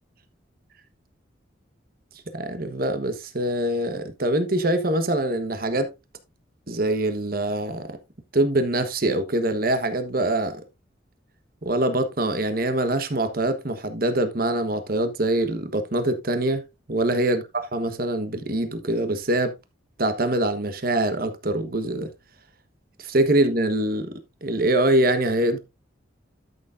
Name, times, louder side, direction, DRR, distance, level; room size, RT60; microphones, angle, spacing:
voice 1, 2.3-5.9 6.7-8.0 8.3-10.6 11.6-16.6 16.9-19.5 20.0-22.1 23.0-24.1 24.4-25.6, right 1 dB, 50° right, 1.3 m, -24 dB
12.5 x 6.9 x 2.6 m
head